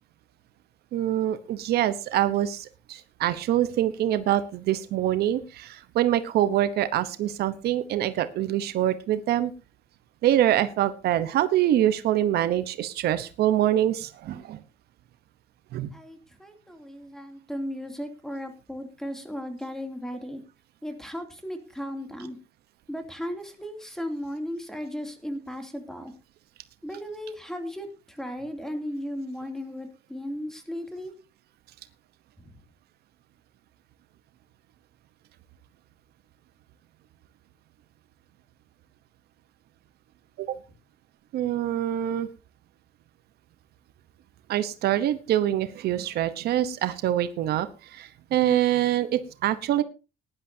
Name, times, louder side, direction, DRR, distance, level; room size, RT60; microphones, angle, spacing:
voice 1, 0.9-9.5 10.2-14.6 15.7-15.9 40.4-40.6 41.3-42.3 44.5-49.8, right 12 dB, 70° right, 12 dB, 1.0 m, -25 dB
voice 2, 15.9-20.4 20.8-22.4 22.9-26.1 26.8-31.1 32.4-32.5, equal, 5° left, 5 dB, 2.7 m, -36 dB
18.5 x 11.0 x 2.8 m, 0.30 s
cardioid pair, 110°, 17 cm